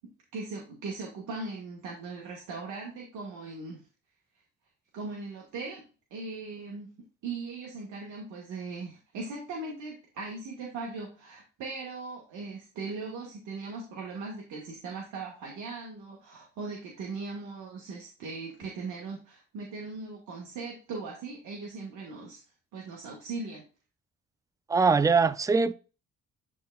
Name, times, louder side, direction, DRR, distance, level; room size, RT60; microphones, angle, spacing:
voice 1, 0.3-3.8 4.9-5.8 6.1-6.9 7.2-22.4 22.7-23.6, right 3 dB, 85° right, 1.7 m, -39 dB
voice 2, 24.7-25.7, right 4 dB, 10° right, 0.4 m, -22 dB
11.5 x 3.9 x 2.3 m
cardioid pair, 90°, 30 cm